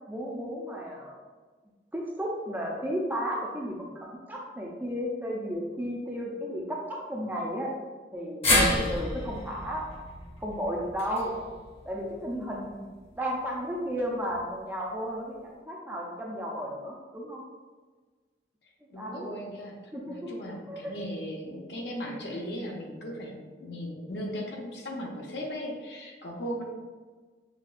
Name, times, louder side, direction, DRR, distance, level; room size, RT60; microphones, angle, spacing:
voice 1, 0.1-1.1 1.9-7.7 8.1-9.8 10.4-11.3 11.9-12.8 13.1-17.4 18.9-19.3 19.9-20.3 20.7-20.9, equal, 10° right, -2 dB, 0.4 m, -33 dB
sound 1, 8.4-12.7 13.0-13.1 14.3-14.4, left 1 dB, 35° left, 0.8 m, -29 dB
voice 2, 18.9-19.8 20.1-26.6, equal, 70° left, -1 dB, 0.7 m, -37 dB
5.8 x 2.3 x 2.4 m, 1.4 s
head